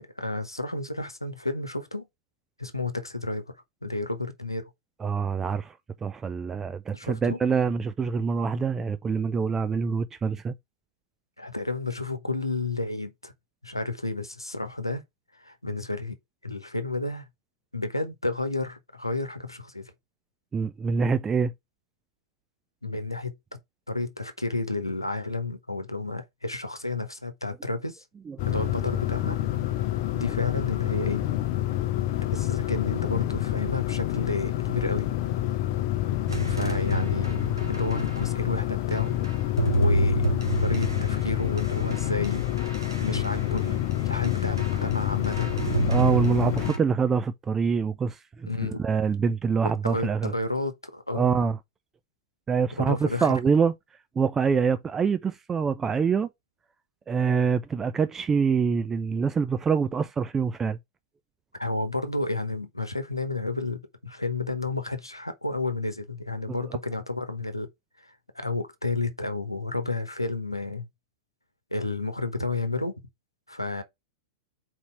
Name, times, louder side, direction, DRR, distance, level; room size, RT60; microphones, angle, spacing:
voice 1, 0.0-2.1 2.6-3.5 3.8-4.7 6.9-7.4 11.4-13.3 13.6-15.0 15.3-16.2 16.4-17.2 17.7-19.9 22.8-23.3 23.9-28.0 28.5-29.4 30.1-31.2 32.3-35.1 36.5-37.4 37.7-39.2 39.8-40.3 40.6-45.6 48.4-48.8 49.8-51.3 52.8-53.4 61.6-67.7 68.0-70.9 71.7-72.9 73.5-73.8, left 2 dB, 85° left, 1.0 m, -31 dB
voice 2, 5.0-5.7 6.0-10.5 20.5-21.5 28.3-28.4 45.9-48.5 48.8-50.3 51.1-51.6 52.5-53.7 54.2-56.3 57.1-60.8 66.5-66.6, right 5 dB, 15° right, 0.4 m, -25 dB
sound 1, 28.4-46.7, left 14 dB, 45° left, 0.6 m, -28 dB
sound 2, 36.3-38.3 38.9-43.9 44.2-44.9 45.2-46.8, right 1 dB, 80° right, 1.5 m, -29 dB
4.4 x 4.2 x 5.6 m
figure-of-eight pair, 95°, 2 cm